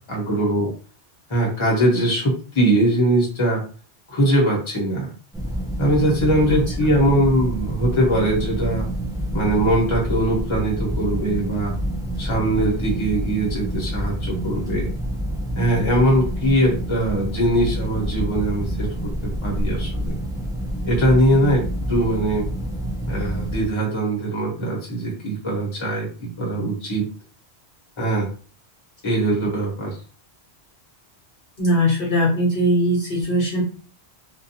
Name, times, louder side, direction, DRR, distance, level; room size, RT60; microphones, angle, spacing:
voice 1, 0.1-0.7 1.3-3.6 4.1-5.1 5.8-8.9 9.3-11.7 12.2-14.9 15.6-20.2 20.8-22.5 23.1-27.1 28.0-28.3 29.0-30.0, right 1 dB, 30° left, -3 dB, 1.0 m, -21 dB
sound 1, 5.3-23.7, equal, 5° right, 0.5 m, -27 dB
voice 2, 6.5-6.9 31.6-33.6, equal, 55° left, -4 dB, 1.0 m, -20 dB
2.5 x 2.3 x 2.8 m, 0.39 s
omnidirectional pair, 1.1 m